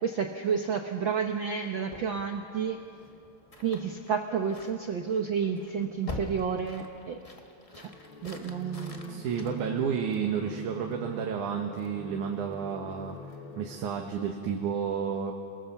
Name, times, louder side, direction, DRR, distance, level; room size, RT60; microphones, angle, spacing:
voice 1, 0.0-2.8 3.6-7.2 7.7-7.9 8.2-9.2, right 6 dB, 65° right, 4 dB, 1.2 m, -30 dB
sound 1, 1.9-10.3, left 2 dB, 25° left, 0.8 m, -46 dB
sound 2, 7.7-14.0, left 2 dB, 50° left, 2.0 m, -45 dB
voice 2, 9.1-13.2 13.6-15.3, right 7 dB, 85° right, 2 dB, 2.8 m, -31 dB
28.0 x 19.5 x 7.2 m, 2.5 s
omnidirectional pair, 3.4 m